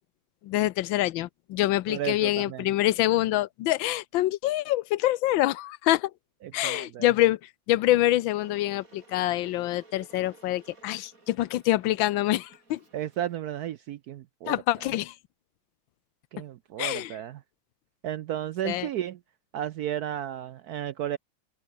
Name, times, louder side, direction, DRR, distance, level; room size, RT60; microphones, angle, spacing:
voice 1, 0.4-6.1 6.5-7.4 7.7-12.8 14.5-15.1 16.8-17.1 18.6-18.9, left 15 dB, 75° left, 1.5 m, -26 dB
voice 2, 1.9-2.7 6.6-7.1 12.9-14.6 16.3-17.4 18.0-19.2 19.5-21.2, right 11 dB, 75° right, 0.9 m, -33 dB
Water / Boiling, 8.3-13.4, right 3 dB, 40° right, 4.5 m, -55 dB
open air
omnidirectional pair, 2.2 m